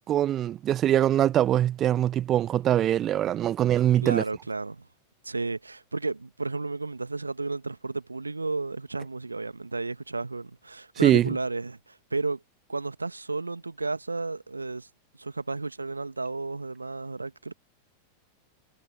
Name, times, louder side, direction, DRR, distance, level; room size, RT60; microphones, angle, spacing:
voice 1, 0.1-4.2 11.0-11.3, right 11 dB, 30° right, 1.2 m, -23 dB
voice 2, 4.0-4.8 5.2-12.4 12.7-14.9 15.2-17.5, right 3 dB, 80° right, 1.5 m, -32 dB
figure-of-eight pair, 90°, 0 cm